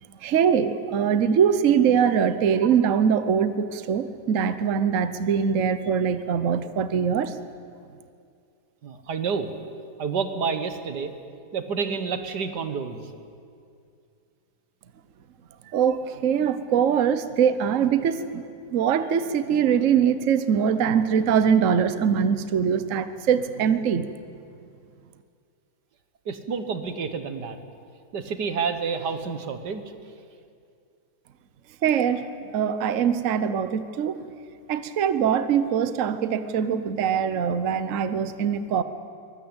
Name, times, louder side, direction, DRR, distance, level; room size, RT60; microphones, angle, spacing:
voice 1, 0.2-7.3 15.7-18.4 18.7-24.1 31.8-32.2 32.5-34.2 34.7-38.8, right 7 dB, 55° right, 12 dB, 1.2 m, -22 dB
voice 2, 8.8-9.5 10.0-11.1 11.5-13.1 26.3-27.6 28.1-29.8, right 5 dB, 85° right, 9 dB, 2.1 m, -29 dB
23.5 x 20.5 x 8.9 m, 2.4 s
omnidirectional pair, 1.7 m